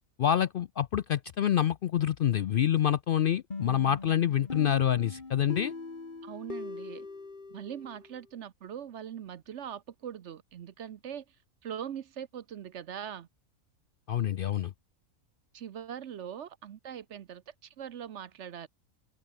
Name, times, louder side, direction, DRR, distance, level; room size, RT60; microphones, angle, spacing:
voice 1, 0.2-5.7 14.1-14.7, left 10 dB, 80° left, 0.4 m, -27 dB
sound 1, 3.5-8.2, left 3 dB, 35° left, 2.0 m, -41 dB
voice 2, 6.2-7.1 7.5-11.2 11.6-13.3 15.5-18.7, right 9 dB, 60° right, 1.0 m, -41 dB
open air
omnidirectional pair, 1.5 m